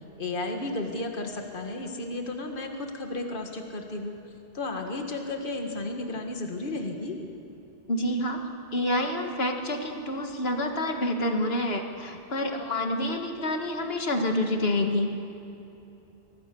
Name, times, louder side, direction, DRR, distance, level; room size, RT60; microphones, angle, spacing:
voice 1, 0.2-4.1 4.5-7.3, left 2 dB, 55° left, 3 dB, 1.9 m, -33 dB
voice 2, 7.9-8.4 8.7-15.1, left 1 dB, 75° left, 4 dB, 2.0 m, -28 dB
24.0 x 18.0 x 7.0 m, 2.9 s
omnidirectional pair, 1.0 m